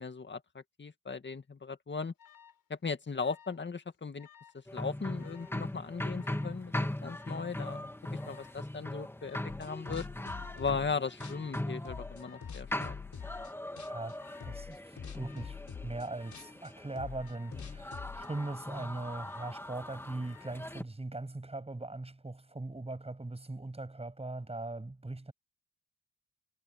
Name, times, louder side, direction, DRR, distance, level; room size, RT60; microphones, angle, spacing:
voice 1, 0.0-2.1 2.7-4.3 4.7-10.1 10.6-13.0, left 5 dB, 30° left, 2.1 m, -38 dB
Alarm, 2.2-2.6 3.2-3.7 3.9-4.6 5.2-5.6 6.2-6.6 7.2-7.6 8.2-8.6 9.2-9.6 10.2-10.6 11.2-11.6 12.2-12.6 13.2-13.6 14.2-14.6 15.2-15.6 16.2-16.6 17.2-17.6 18.2-18.7 19.2-19.7 20.2-20.7, left 9 dB, 75° left, 7.2 m, -57 dB
sound 1, 4.7-20.8, left 1 dB, 5° left, 2.2 m, -40 dB
sound 2, 9.5-10.9 11.2-13.5 13.8-14.1 14.4-18.3, left 6 dB, 55° left, 6.0 m, -45 dB
voice 2, 13.8-25.3, right 2 dB, 15° right, 7.7 m, -40 dB
cardioid pair, 100°, 35 cm